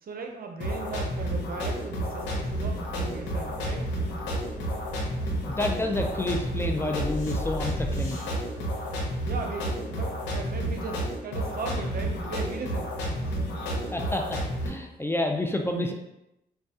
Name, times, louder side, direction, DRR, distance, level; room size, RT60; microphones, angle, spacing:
voice 1, 0.0-3.9 9.2-13.4, right 4 dB, 55° right, 3 dB, 0.6 m, -37 dB
sound 1, 0.6-14.7, right 1 dB, 85° left, 0.8 m, -31 dB
sound 2, 2.2-8.5 10.0-10.1, left 3 dB, 40° left, 1.0 m, -41 dB
voice 2, 5.5-8.2 13.9-15.9, left 1 dB, 15° left, 3 dB, 0.5 m, -29 dB
4.4 x 2.2 x 2.7 m, 0.86 s
supercardioid pair, 55°, 18 cm